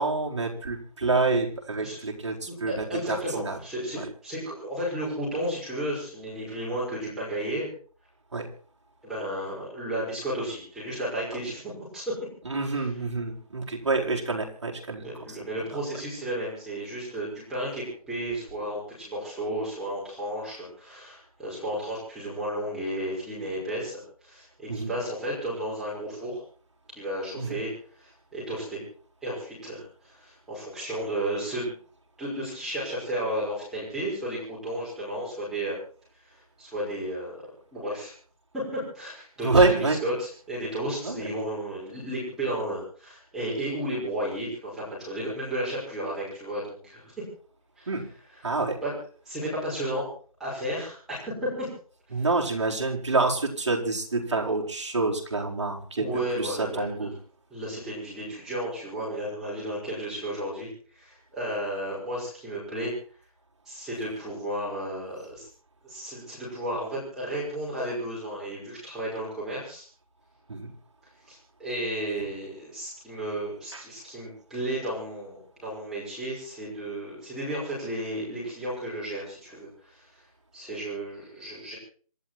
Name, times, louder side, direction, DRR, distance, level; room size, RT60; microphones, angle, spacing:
voice 1, 0.0-3.6 3.9-4.0 8.3-8.5 12.4-15.1 24.7-24.9 27.4-27.6 39.4-40.0 41.0-41.3 47.9-48.1 48.4-48.8 52.1-56.1 56.3-57.1 70.5-70.7 73.7-73.8, right 3 dB, 50° right, -1 dB, 4.6 m, -27 dB
voice 2, 2.5-7.7 9.0-12.0 12.7-12.9 15.0-26.4 26.9-27.7 28.0-28.8 29.2-31.7 32.2-35.8 36.2-38.1 38.5-47.3 47.8-47.9 48.8-48.9 49.3-50.1 50.4-51.7 52.2-52.3 56.0-57.1 57.5-60.7 60.9-62.9 63.7-65.5 65.8-69.9 71.3-80.1 80.5-81.8, right 1 dB, ahead, -7 dB, 5.6 m, -33 dB
27.0 x 11.0 x 4.4 m, 0.42 s
figure-of-eight pair, 170°, 19 cm